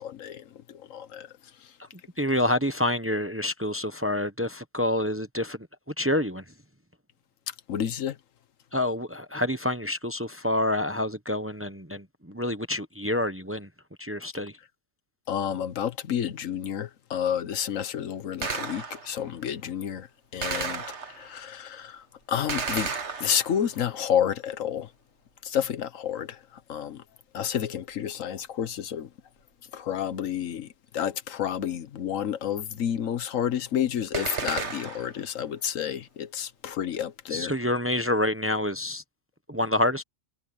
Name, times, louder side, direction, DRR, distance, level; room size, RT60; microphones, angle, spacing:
voice 1, 0.0-1.8 7.5-8.2 15.3-22.9 23.2-24.9 25.4-27.0 27.3-29.1 29.7-37.5, left 9 dB, 85° left, 1.3 m, -30 dB
voice 2, 2.2-5.7 6.0-6.4 8.7-13.7 14.0-14.6 37.3-39.0 39.5-40.0, left 1 dB, 10° right, 0.8 m, -27 dB
Gunshot gunfire, 18.4-19.2 20.4-21.4 22.5-23.8 34.1-35.2, right 5 dB, 60° right, 1.9 m, -33 dB
omnidirectional pair, 1.3 m